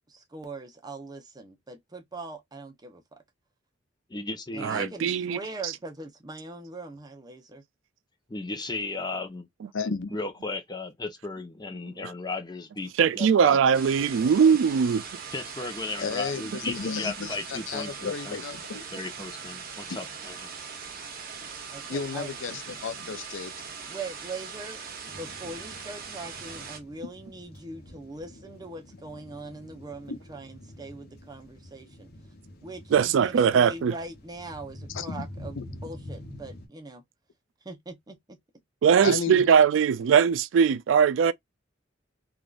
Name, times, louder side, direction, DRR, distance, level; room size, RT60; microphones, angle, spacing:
voice 1, 0.1-3.2 4.5-7.6 21.7-22.3 23.9-32.1 32.6-37.0 37.6-38.4, right 2 dB, 20° right, 0.7 m, -41 dB
voice 2, 4.1-4.9 8.3-9.5 10.1-13.6 15.3-18.4 18.9-20.5, left 3 dB, 20° left, 0.7 m, -35 dB
voice 3, 4.6-5.7 13.0-15.0 32.9-33.9 38.8-41.3, right 7 dB, 75° right, 0.3 m, -21 dB
voice 4, 9.7-10.1 16.0-18.8 21.9-23.5 30.1-30.2 34.9-35.3 35.6-35.7 39.0-39.4, left 5 dB, 75° left, 0.5 m, -33 dB
sound 1, 13.7-26.8, right 6 dB, 50° right, 0.9 m, -40 dB
sound 2, 25.1-36.7, left 1 dB, 55° left, 0.9 m, -46 dB
3.5 x 2.4 x 2.3 m
head